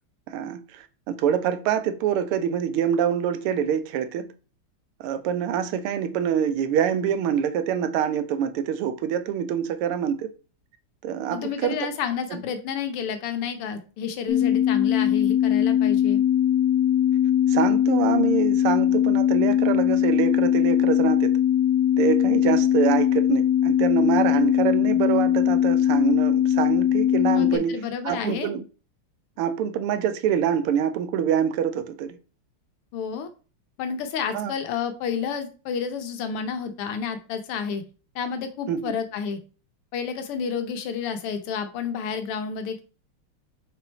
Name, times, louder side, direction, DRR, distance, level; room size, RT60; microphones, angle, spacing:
voice 1, 0.3-4.3 5.0-10.3 11.0-11.8 12.3-12.4 17.5-21.4 22.0-27.8 28.0-28.6 29.4-32.2 34.3-34.5 38.7-38.9, right 8 dB, 85° right, 1.6 m, -25 dB
voice 2, 11.3-16.2 27.3-28.5 32.9-33.3 33.8-37.8 38.2-39.4 39.9-42.8, left 6 dB, 90° left, 1.9 m, -30 dB
sound 1, 14.3-27.6, left 10 dB, 50° left, 1.8 m, -20 dB
5.3 x 4.5 x 4.1 m
omnidirectional pair, 2.4 m